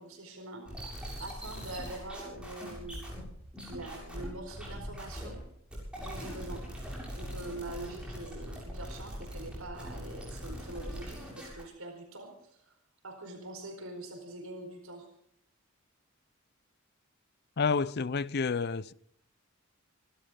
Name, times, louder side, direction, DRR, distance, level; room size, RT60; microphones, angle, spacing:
voice 1, 0.0-3.1 3.7-5.4 6.0-6.6 7.1-12.7 13.0-15.1, right 2 dB, 80° right, 4.5 m, -44 dB
sound 1, 0.7-5.4 5.7-11.6, equal, 5° right, 7.3 m, -42 dB
voice 2, 17.6-18.9, left 5 dB, 50° left, 0.5 m, -29 dB
27.0 x 12.5 x 3.8 m
head